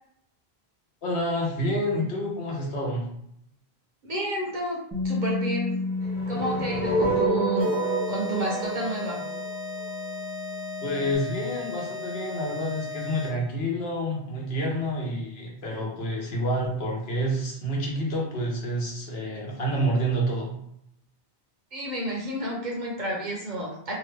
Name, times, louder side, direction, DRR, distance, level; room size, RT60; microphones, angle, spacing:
voice 1, 1.0-3.0 10.8-20.5, equal, 70° left, -2 dB, 1.0 m, -28 dB
voice 2, 4.0-4.8 5.0-5.7 6.3-7.7 8.1-9.2 21.7-23.9, right 1 dB, 50° right, -3 dB, 0.8 m, -30 dB
Bass guitar, 4.9-11.2, left 3 dB, 20° right, 0.4 m, -33 dB
sound 1, 6.0-10.1, right 2 dB, 50° left, 0.5 m, -28 dB
sound 2, 7.6-13.6, left 3 dB, 85° right, 1.0 m, -36 dB
2.8 x 2.1 x 3.2 m, 0.75 s
omnidirectional pair, 1.1 m